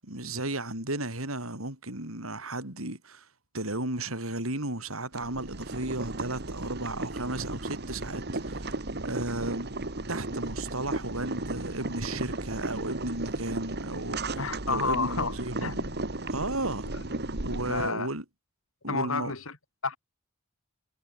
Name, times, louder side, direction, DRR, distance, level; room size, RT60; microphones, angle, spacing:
voice 1, 0.0-3.3 3.5-8.7 9.0-9.7 10.1-15.7 16.3-16.9 17.3-18.2 18.8-19.3, right 2 dB, 75° right, 7.8 m, -34 dB
Boiling, 5.1-17.9, right 2 dB, 50° right, 2.4 m, -35 dB
voice 2, 14.4-15.4 15.6-15.8 17.7-18.1 18.8-19.6 19.8-20.0, left 4 dB, 70° left, 4.1 m, -30 dB
head